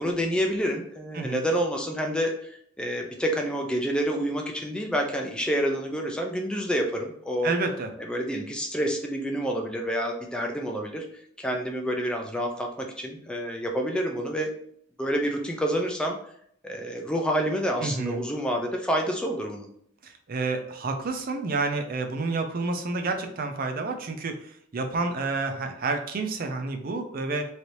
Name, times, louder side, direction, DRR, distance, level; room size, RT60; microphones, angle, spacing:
voice 1, 0.0-7.5 8.0-11.1 11.4-14.5 15.0-16.2 16.6-19.7, equal, 5° left, 1 dB, 0.5 m, -28 dB
voice 2, 7.4-7.9 17.8-18.2 20.0-27.5, right 3 dB, 45° right, 6 dB, 0.5 m, -29 dB
3.2 x 2.8 x 2.6 m, 0.67 s
head